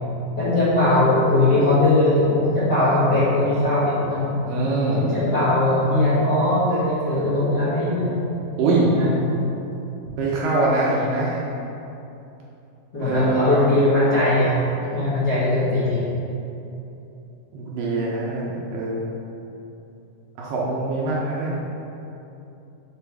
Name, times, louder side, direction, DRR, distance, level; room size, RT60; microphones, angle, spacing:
voice 1, 0.4-4.3 4.9-8.1 8.9-9.1 12.9-14.5 14.9-16.0, left 2 dB, 55° left, -14 dB, 1.1 m, -20 dB
voice 2, 4.5-5.0 8.6-8.9 10.2-11.4 13.0-13.6 17.5-19.1 20.4-21.6, right 2 dB, 75° right, -4 dB, 2.1 m, -23 dB
6.7 x 5.3 x 3.4 m, 2.9 s
omnidirectional pair, 4.3 m